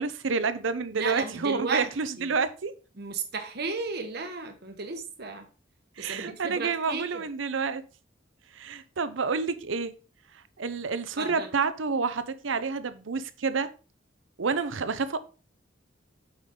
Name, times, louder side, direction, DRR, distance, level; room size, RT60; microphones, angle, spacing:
voice 1, 0.0-2.7 6.0-7.8 8.5-9.9 10.6-13.7 14.4-15.2, right 4 dB, 80° right, 0.7 m, -29 dB
voice 2, 0.9-1.9 2.2-2.3 3.0-5.4 6.0-7.3 11.2-11.5, right 4 dB, 55° right, 1.1 m, -34 dB
8.1 x 5.0 x 3.7 m
head